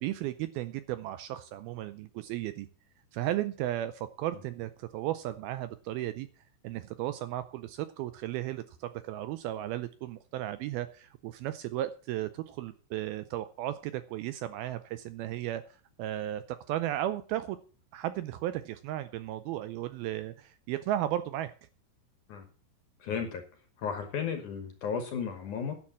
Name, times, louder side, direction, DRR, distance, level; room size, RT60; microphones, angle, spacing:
voice 1, 0.0-2.7 3.1-6.3 6.6-17.6 17.9-21.5, right 13 dB, 80° right, 13 dB, 2.2 m, -35 dB
voice 2, 23.0-23.4 23.8-25.7, left 6 dB, 65° left, 7 dB, 2.1 m, -34 dB
10.5 x 7.5 x 7.4 m, 0.39 s
omnidirectional pair, 4.8 m